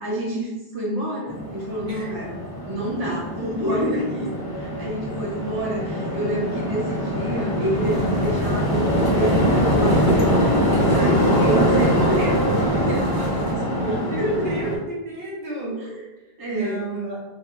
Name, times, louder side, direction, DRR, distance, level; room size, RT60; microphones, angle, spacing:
voice 1, 0.0-14.7 15.6-16.0 16.4-16.8, right 1 dB, 25° right, -5 dB, 0.6 m, -28 dB
sound 1, 1.3-14.8, equal, 35° left, 0.4 m, -23 dB
sound 2, 7.7-13.5, left 1 dB, 70° left, 0.7 m, -34 dB
voice 2, 14.0-15.8 16.2-17.2, right 2 dB, 60° right, -4 dB, 0.8 m, -31 dB
2.4 x 2.3 x 2.9 m, 1.0 s
omnidirectional pair, 1.0 m